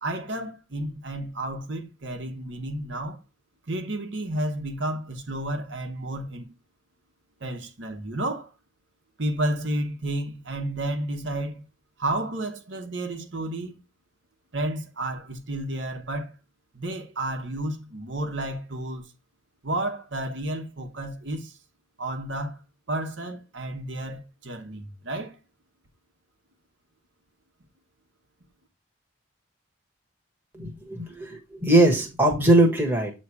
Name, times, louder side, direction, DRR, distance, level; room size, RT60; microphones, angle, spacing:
voice 1, 0.0-3.2 3.7-6.5 7.4-8.5 9.2-11.6 12.0-13.8 14.5-16.3 16.7-19.1 19.6-21.6 22.0-22.6 22.9-25.4, right 1 dB, 60° right, 1.1 m, -31 dB
voice 2, 30.5-33.1, right 1 dB, 10° right, 1.3 m, -21 dB
8.3 x 3.2 x 4.6 m
head